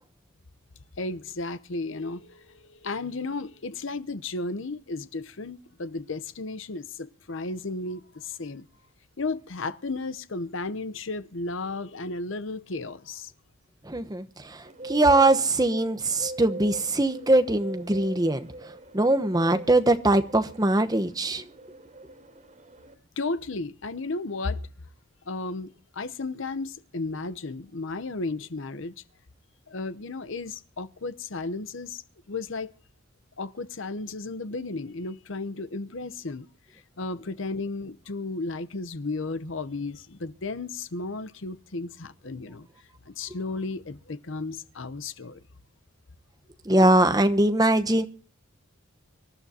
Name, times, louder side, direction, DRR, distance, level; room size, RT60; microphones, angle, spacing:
voice 1, 1.0-8.7 9.2-13.3 23.2-24.7 25.3-28.9 29.7-32.0 32.3-32.7 33.4-36.5 36.7-42.7 43.1-45.4, left 3 dB, 65° left, 0.8 m, -34 dB
voice 2, 13.9-18.5 18.9-21.4 46.7-48.0, right 2 dB, 20° right, 1.0 m, -22 dB
Bird, 14.6-22.9, right 2 dB, 35° right, 3.4 m, -42 dB
25.0 x 12.0 x 2.8 m
head